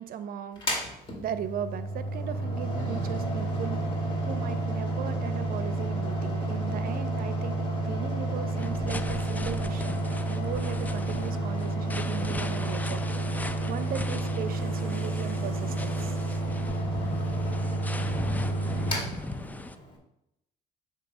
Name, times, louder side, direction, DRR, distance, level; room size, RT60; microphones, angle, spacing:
voice 1, 0.0-3.9 4.1-10.0 10.3-16.4, right 8 dB, 60° right, 11 dB, 0.7 m, -38 dB
Mechanical fan, 0.6-19.9, right 2 dB, 30° left, 2.1 m, -30 dB
sound 1, 8.6-19.8, left 2 dB, 10° left, 0.4 m, -39 dB
8.4 x 2.9 x 6.2 m, 0.84 s
cardioid pair, 110°, 17 cm